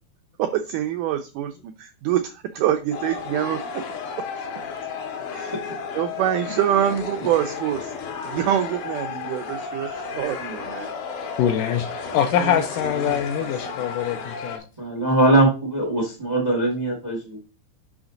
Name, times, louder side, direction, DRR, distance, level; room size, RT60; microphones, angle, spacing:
voice 1, 0.4-3.8 5.3-5.5 6.0-7.9 8.2-10.9 12.4-12.6 13.0-13.2 13.7-13.8, right 11 dB, 85° right, 1.8 m, -25 dB
sound 1, 2.9-14.6, left 5 dB, 65° left, 2.4 m, -33 dB
voice 2, 11.4-14.6, left 10 dB, 80° left, 2.0 m, -24 dB
voice 3, 14.8-17.4, right 2 dB, 40° right, 0.5 m, -21 dB
6.0 x 5.7 x 3.8 m
omnidirectional pair, 4.4 m